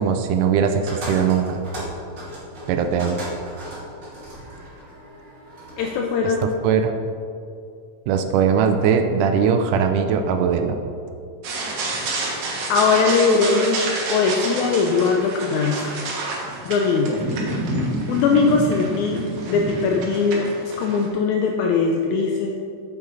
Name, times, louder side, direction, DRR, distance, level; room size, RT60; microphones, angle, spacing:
voice 1, 0.0-1.6 2.7-3.2 6.2-6.3 6.6-6.9 8.1-10.8, right 7 dB, 80° right, 7 dB, 2.0 m, -20 dB
sound 1, 0.9-6.0, equal, 35° right, 2.8 m, -36 dB
voice 2, 5.8-6.5 12.7-13.8 14.1-16.0 16.6-17.2 18.1-22.5, left 4 dB, 80° left, 2 dB, 1.7 m, -20 dB
sound 2, 11.4-21.1, right 2 dB, 60° right, 2.4 m, -28 dB
8.9 x 8.3 x 4.0 m, 2.5 s
omnidirectional pair, 4.0 m